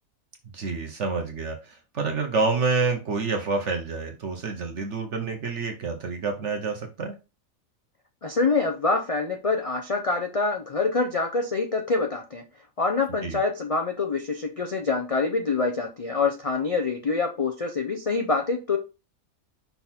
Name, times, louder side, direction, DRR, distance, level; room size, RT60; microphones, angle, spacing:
voice 1, 0.4-7.1 13.2-13.4, right 4 dB, 60° right, 4 dB, 1.1 m, -28 dB
voice 2, 8.2-12.4 12.8-18.8, left 4 dB, 40° left, 4 dB, 0.5 m, -25 dB
5.8 x 4.0 x 4.2 m, 0.29 s
omnidirectional pair, 1.5 m